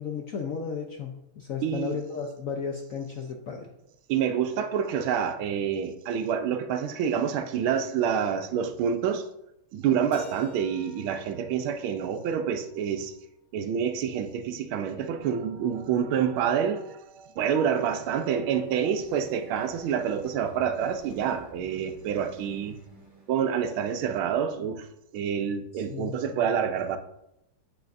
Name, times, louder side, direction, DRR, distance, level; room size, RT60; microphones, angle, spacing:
voice 1, 0.0-3.7 25.7-26.4, left 6 dB, 65° left, 0.8 m, -34 dB
voice 2, 1.6-2.0 4.1-9.2 9.7-13.1 13.5-22.8 23.3-24.9 25.1-27.0, right 8 dB, 85° right, 1.5 m, -27 dB
Keyboard (musical), 10.1-13.0, right 1 dB, 90° left, 1.5 m, -49 dB
sound 1, 18.4-23.7, right 1 dB, 15° right, 2.7 m, -52 dB
8.6 x 8.2 x 2.6 m
omnidirectional pair, 2.2 m